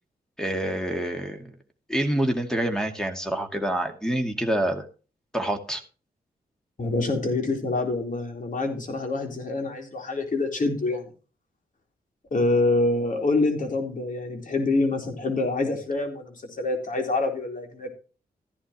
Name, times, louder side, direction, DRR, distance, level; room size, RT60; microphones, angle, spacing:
voice 1, 0.4-1.5 1.9-4.8 5.3-5.8, right 1 dB, 5° left, 4 dB, 2.3 m, -27 dB
voice 2, 6.8-11.1 12.3-17.9, left 2 dB, 55° left, 3 dB, 3.9 m, -26 dB
14.5 x 11.0 x 3.1 m, 0.36 s
cardioid pair, 55°, 17 cm